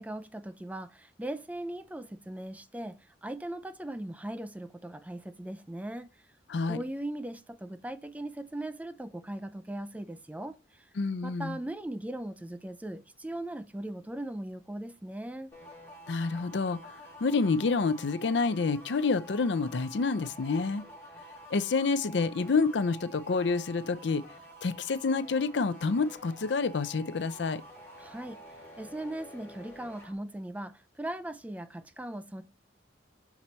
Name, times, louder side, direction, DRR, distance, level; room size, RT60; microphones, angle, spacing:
voice 1, 0.0-6.1 6.6-10.9 11.2-15.5 28.0-28.4 28.8-32.4, right 1 dB, 10° right, 0.4 m, -39 dB
voice 2, 11.0-11.6 16.1-20.8 21.5-24.2 24.6-27.6, left 4 dB, 70° left, 0.5 m, -28 dB
sound 1, 15.5-30.1, right 1 dB, 15° left, 2.3 m, -49 dB
6.0 x 4.3 x 4.0 m
head